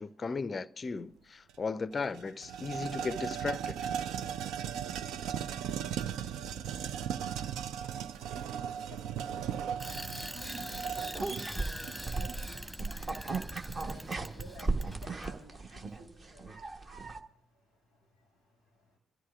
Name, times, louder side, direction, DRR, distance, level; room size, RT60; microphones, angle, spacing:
voice 1, 0.0-3.8, left 4 dB, 35° left, 0.4 m, -36 dB
sound 1, 1.5-1.6 1.9-12.6, right 8 dB, 60° right, 0.5 m, -37 dB
voice 2, 8.9-9.4 10.2-11.1 11.6-13.2 13.8-16.5, right 1 dB, 90° right, 5.3 m, -53 dB
Bicycle, 9.8-15.3, equal, 5° right, 1.3 m, -43 dB
sound 2, 11.1-17.2, right 3 dB, 35° right, 1.2 m, -36 dB
28.5 x 13.5 x 2.5 m
figure-of-eight pair, 45°, 0 cm